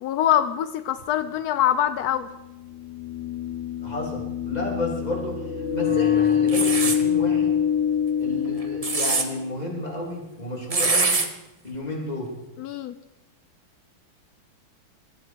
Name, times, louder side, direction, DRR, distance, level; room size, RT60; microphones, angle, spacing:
voice 1, 0.0-2.3 12.6-12.9, left 11 dB, 80° left, 12 dB, 0.8 m, -24 dB
sound 1, 1.0-1.1 2.6-9.4, left 8 dB, 40° left, 1.2 m, -25 dB
voice 2, 3.8-5.4 5.7-7.5 8.2-11.2 11.6-12.3, left 2 dB, 20° left, -1 dB, 3.2 m, -32 dB
sound 2, 6.5-7.0 8.6-9.3 10.7-11.3, right 3 dB, 30° right, 0.6 m, -23 dB
18.0 x 13.0 x 4.6 m, 0.93 s
omnidirectional pair, 2.3 m